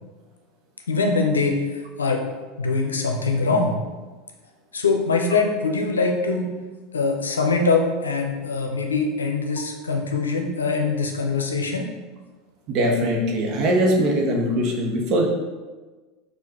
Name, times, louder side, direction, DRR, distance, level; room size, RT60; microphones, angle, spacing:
voice 1, 0.9-2.2 2.6-3.8 4.7-6.5 6.9-11.9, left 4 dB, 85° left, 3 dB, 0.6 m, -23 dB
voice 2, 12.7-15.3, equal, 50° right, 1 dB, 0.9 m, -21 dB
4.5 x 2.5 x 4.5 m, 1.3 s
hypercardioid pair, 80°, 0 cm